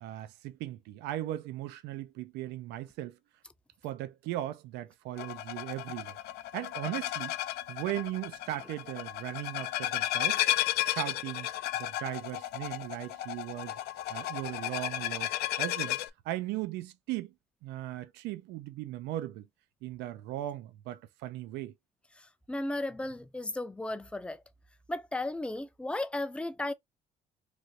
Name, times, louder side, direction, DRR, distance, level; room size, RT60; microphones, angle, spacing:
voice 1, 0.0-3.2 3.8-6.2 6.5-7.4 7.7-10.4 10.8-11.5 11.8-13.8 14.1-16.0 16.2-17.3 17.6-19.5 19.8-21.7, right 14 dB, 90° right, 0.4 m, -38 dB
sound 1, 5.2-16.1, left 14 dB, 70° left, 0.4 m, -33 dB
voice 2, 22.5-24.4 24.9-26.7, left 2 dB, 5° left, 0.4 m, -34 dB
3.2 x 2.5 x 2.6 m
cardioid pair, 110°, 17 cm